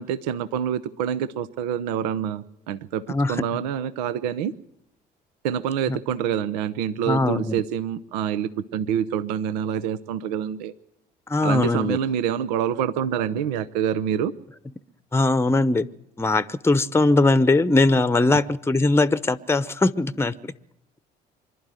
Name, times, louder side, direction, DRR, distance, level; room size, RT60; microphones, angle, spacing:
voice 1, 0.0-4.5 5.4-10.7 11.4-14.3, right 9 dB, 80° right, 0.8 m, -26 dB
voice 2, 7.1-7.6 11.3-12.0 15.1-15.9 16.2-20.5, left 2 dB, 10° left, 0.9 m, -20 dB
25.0 x 12.0 x 9.1 m
hypercardioid pair, 55°, 21 cm